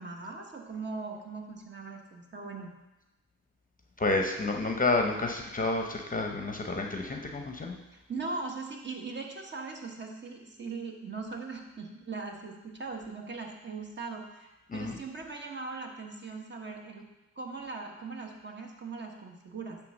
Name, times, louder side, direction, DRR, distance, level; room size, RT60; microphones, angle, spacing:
voice 1, 0.0-2.7 7.9-17.1 17.4-19.8, right 4 dB, 35° right, 1 dB, 1.2 m, -40 dB
voice 2, 4.0-7.8 14.7-15.0, left 2 dB, 25° left, 2 dB, 0.8 m, -30 dB
9.2 x 3.4 x 6.4 m, 1.0 s
cardioid pair, 110°, 33 cm